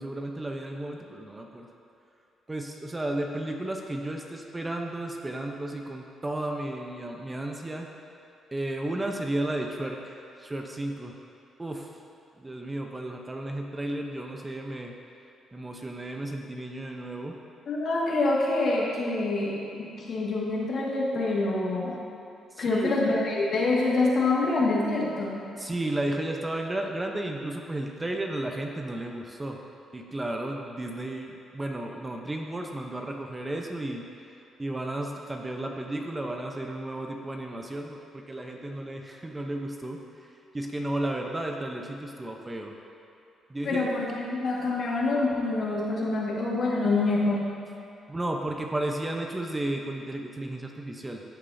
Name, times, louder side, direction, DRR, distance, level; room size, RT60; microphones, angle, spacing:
voice 1, 0.0-1.7 2.5-7.9 8.5-11.2 11.6-11.9 12.4-15.0 15.5-17.4 22.5-22.9 25.6-29.6 29.9-34.3 34.6-42.7 43.5-43.9 48.1-51.2, right 1 dB, 20° right, 2 dB, 0.8 m, -33 dB
voice 2, 17.7-22.0 22.6-25.5 43.6-47.5, left 2 dB, 55° left, -4 dB, 1.9 m, -26 dB
14.5 x 6.7 x 2.8 m, 2.8 s
cardioid pair, 90°, 0 cm